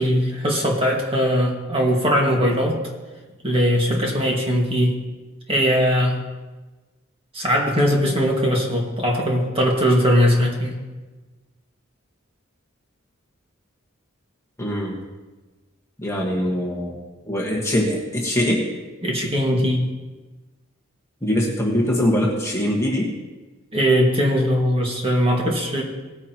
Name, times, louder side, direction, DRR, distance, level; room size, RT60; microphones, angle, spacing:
voice 1, 0.0-2.8 3.4-5.0 5.5-6.2 7.3-10.8 19.0-19.9 23.7-25.8, equal, 25° right, -1 dB, 1.8 m, -20 dB
voice 2, 14.6-15.0 16.0-17.0 17.3-18.7 21.2-23.1, equal, 15° left, -2 dB, 1.5 m, -22 dB
18.0 x 9.6 x 2.9 m, 1.2 s
head